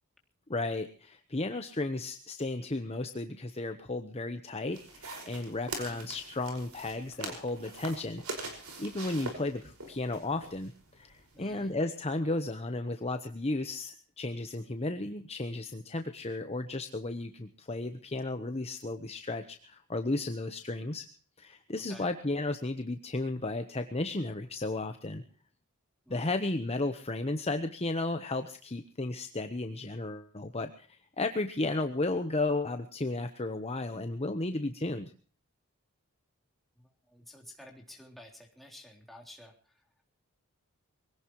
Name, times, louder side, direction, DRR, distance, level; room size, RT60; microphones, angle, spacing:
voice 1, 0.5-8.2 8.5-21.1 21.4-25.2 26.1-35.1, left 2 dB, 30° left, 7 dB, 1.0 m, -34 dB
sound 1, 4.7-11.7, right 2 dB, 70° right, 5.4 m, -43 dB
voice 2, 11.3-11.7 21.9-22.1 26.0-26.2 36.8-39.7, left 1 dB, ahead, -1 dB, 3.6 m, -52 dB
23.5 x 17.5 x 3.1 m, 0.42 s
head